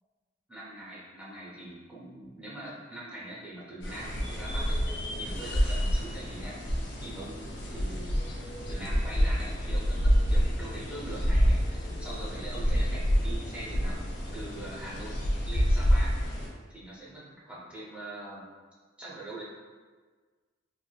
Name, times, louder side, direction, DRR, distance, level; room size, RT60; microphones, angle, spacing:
voice 1, 0.5-6.5 7.0-8.3 8.7-15.1 15.5-16.1 16.7-17.2 17.5-18.4 19.0-19.4, right 1 dB, 5° right, -7 dB, 0.6 m, -43 dB
sound 1, 3.8-16.5, equal, 65° left, 0.6 m, -28 dB
3.1 x 2.5 x 2.2 m, 1.4 s
head